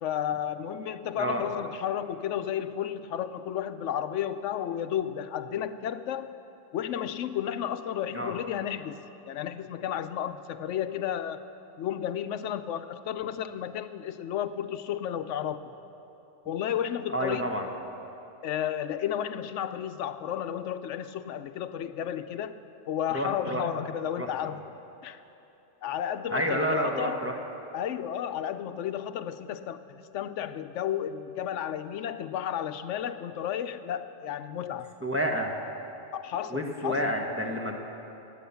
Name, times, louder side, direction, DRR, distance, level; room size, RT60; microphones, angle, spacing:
voice 1, 0.0-6.3 6.7-9.0 9.3-11.4 11.8-15.6 16.5-17.5 18.4-22.6 22.9-24.6 25.0-25.2 25.8-27.2 27.7-29.8 30.1-34.9 36.1-37.1, left 10 dB, 85° left, 11 dB, 0.9 m, -32 dB
voice 2, 17.1-17.7 23.1-23.6 24.2-24.3 26.3-27.3 35.0-35.5 36.5-37.8, equal, 10° right, 0 dB, 1.2 m, -29 dB
18.5 x 9.3 x 7.0 m, 2.9 s
omnidirectional pair, 1.2 m